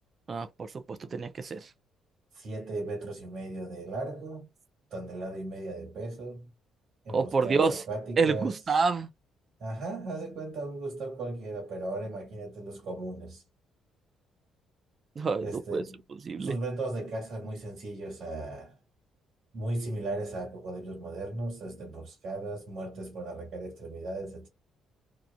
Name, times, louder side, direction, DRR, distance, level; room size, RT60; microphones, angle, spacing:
voice 1, 0.3-1.7 7.1-7.8 8.2-9.1 15.2-15.8 16.3-16.6, right 4 dB, 45° right, 0.5 m, -28 dB
voice 2, 2.3-4.5 4.9-6.5 7.0-8.6 9.6-13.4 15.4-16.0 16.4-18.8 19.5-24.5, right 2 dB, 65° right, 1.6 m, -37 dB
2.9 x 2.4 x 2.2 m
supercardioid pair, 60°, 0 cm